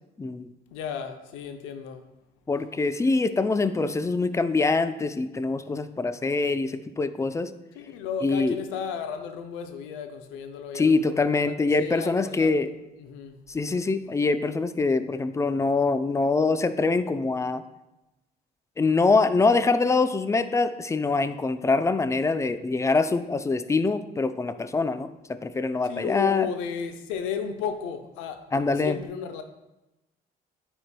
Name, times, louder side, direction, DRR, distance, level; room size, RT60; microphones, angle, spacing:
voice 1, 0.2-0.5 2.5-7.5 8.2-8.6 10.7-12.7 13.5-17.6 18.8-26.5 28.5-29.0, left 3 dB, 15° left, 0.4 m, -24 dB
voice 2, 0.7-2.0 7.8-12.5 13.0-13.4 25.8-29.4, left 7 dB, 85° left, 0.6 m, -34 dB
9.7 x 4.4 x 2.2 m
supercardioid pair, 75°, 20 cm